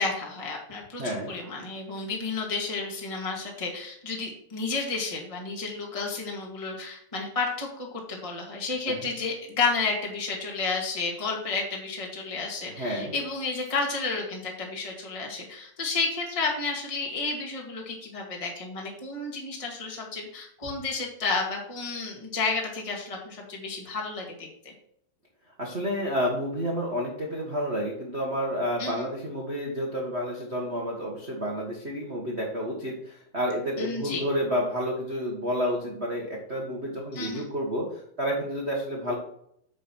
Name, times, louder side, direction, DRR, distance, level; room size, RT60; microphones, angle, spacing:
voice 1, 0.0-24.7 28.8-29.1 33.8-34.2 37.1-37.5, left 4 dB, 15° left, -1 dB, 1.2 m, -31 dB
voice 2, 1.0-1.3 8.9-9.0 12.8-13.1 25.6-37.9 38.2-39.1, equal, 70° right, -2 dB, 0.6 m, -30 dB
9.3 x 5.1 x 6.2 m, 0.70 s
omnidirectional pair, 4.0 m